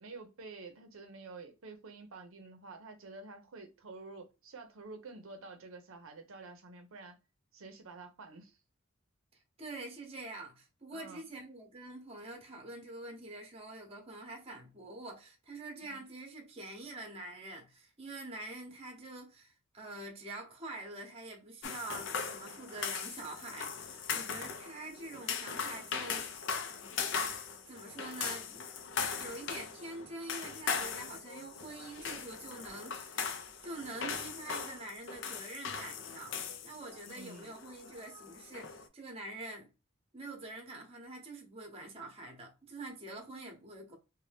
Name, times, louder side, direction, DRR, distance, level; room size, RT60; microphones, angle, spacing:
voice 1, 0.0-7.2 7.5-8.6 10.9-11.3 15.8-16.0 37.1-37.5, right 3 dB, 80° right, 0.6 m, -49 dB
voice 2, 9.3-26.3 27.7-28.7 29.1-33.2 33.6-39.7 40.1-43.9, right 2 dB, 30° right, 0.8 m, -46 dB
sound 1, 21.6-38.9, left 6 dB, 60° left, 0.4 m, -39 dB
2.6 x 2.1 x 3.3 m
head